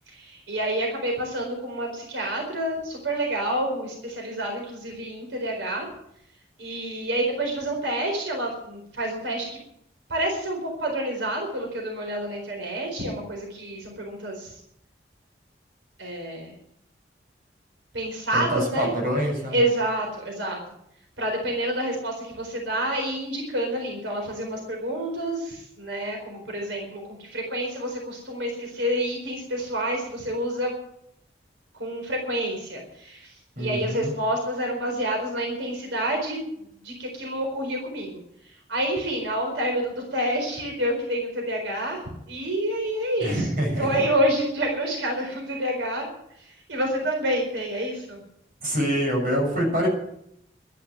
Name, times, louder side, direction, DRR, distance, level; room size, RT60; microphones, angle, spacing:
voice 1, 0.1-5.9 6.6-9.6 10.1-14.6 16.0-16.5 17.9-18.9 19.5-20.6 21.2-30.7 31.8-36.4 36.8-38.2 38.7-43.5 43.8-46.1 46.4-48.2, right 1 dB, 90° right, 1 dB, 4.3 m, -28 dB
voice 2, 18.3-19.6 33.6-34.1 43.2-44.0 48.6-49.9, equal, 50° right, -1 dB, 7.0 m, -25 dB
13.0 x 11.0 x 8.9 m, 0.75 s
head